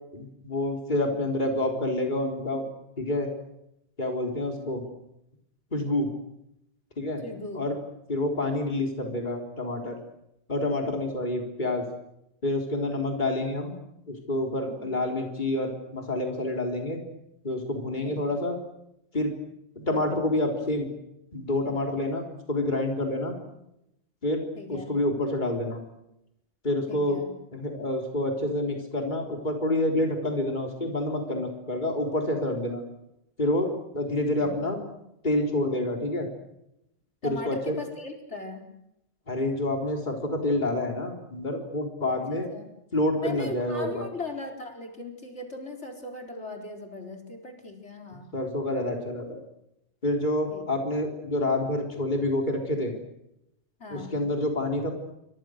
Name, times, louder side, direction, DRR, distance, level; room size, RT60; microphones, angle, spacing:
voice 1, 0.1-2.6 3.0-3.3 4.0-4.8 5.7-6.1 7.0-7.2 7.5-7.8 8.1-10.0 10.5-11.9 12.4-13.7 14.1-17.0 17.4-18.6 19.1-19.3 19.8-20.9 21.3-23.3 24.2-24.4 24.7-25.8 26.6-27.2 27.5-32.8 33.4-34.8 35.2-36.3 37.2-37.8 39.3-42.5 42.9-44.1 48.1-49.4 50.0-52.9 53.9-54.9, left 1 dB, 40° left, 2 dB, 4.1 m, -28 dB
voice 2, 7.2-7.6 14.7-15.0 18.0-18.4 24.6-24.9 26.9-27.3 34.4-34.6 37.2-38.7 42.3-42.7 43.2-48.3 50.5-50.6 53.8-54.1, left 2 dB, 70° left, 2 dB, 4.4 m, -39 dB
29.5 x 25.0 x 6.5 m, 0.83 s
omnidirectional pair, 1.2 m